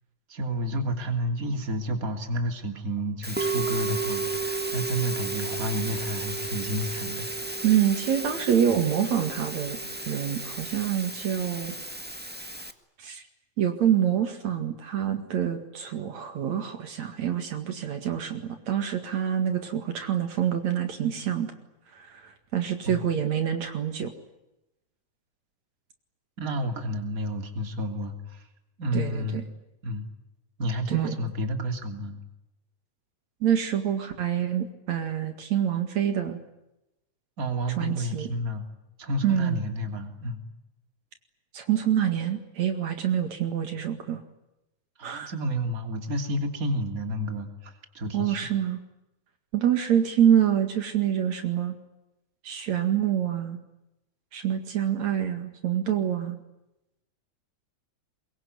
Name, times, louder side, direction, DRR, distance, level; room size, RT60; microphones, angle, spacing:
voice 1, 0.3-7.3 22.8-23.0 26.4-28.4 28.8-29.5 29.8-30.1 30.6-32.2 37.4-38.6 39.0-40.4 45.0-48.5, equal, 30° right, 6 dB, 3.3 m, -30 dB
Musical instrument, 3.2-12.7, right 3 dB, 10° right, 0.6 m, -33 dB
voice 2, 7.6-9.8 10.0-11.7 13.0-13.2 13.6-21.5 21.9-24.1 28.9-29.4 30.9-31.1 33.4-36.4 37.8-38.3 39.2-39.6 41.5-44.2 45.0-45.3 48.1-48.8 49.5-51.8 52.4-53.6 54.3-56.4, right 9 dB, 65° right, 7 dB, 3.2 m, -26 dB
25.0 x 22.5 x 9.6 m, 0.92 s
omnidirectional pair, 3.4 m